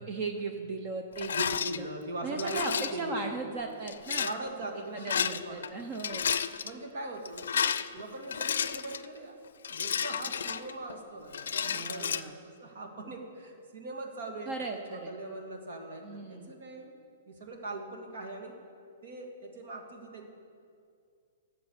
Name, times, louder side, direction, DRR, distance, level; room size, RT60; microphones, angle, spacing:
voice 1, 0.0-1.9 2.2-4.3 4.9-6.2 11.6-12.3 14.5-15.1 16.0-16.5, right 3 dB, 30° right, 4 dB, 0.7 m, -37 dB
Rattle, 1.2-1.8 2.4-3.0 3.9-4.4 5.0-5.7 5.9-6.7 7.3-9.1 9.6-10.9 11.3-12.2, left 7 dB, 80° left, 0.5 m, -32 dB
voice 2, 1.3-3.4 4.2-5.8 6.6-9.3 9.7-16.9 17.3-18.5 19.0-20.3, right 2 dB, 65° right, 3 dB, 2.1 m, -41 dB
11.5 x 7.4 x 7.1 m, 2.3 s
hypercardioid pair, 155°, 0 cm